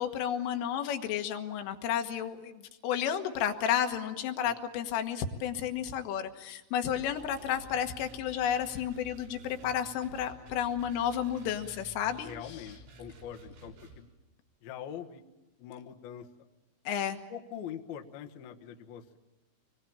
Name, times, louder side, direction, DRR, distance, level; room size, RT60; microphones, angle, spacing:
voice 1, 0.0-12.3 16.9-17.2, left 9 dB, 85° left, 6 dB, 4.0 m, -32 dB
sound 1, 6.9-14.0, right 2 dB, 80° right, 8.4 m, -51 dB
voice 2, 12.2-14.1 14.6-15.2 15.6-16.3 17.3-19.2, left 9 dB, 65° left, 3 dB, 2.7 m, -43 dB
26.0 x 22.0 x 8.8 m, 1.0 s
omnidirectional pair, 5.8 m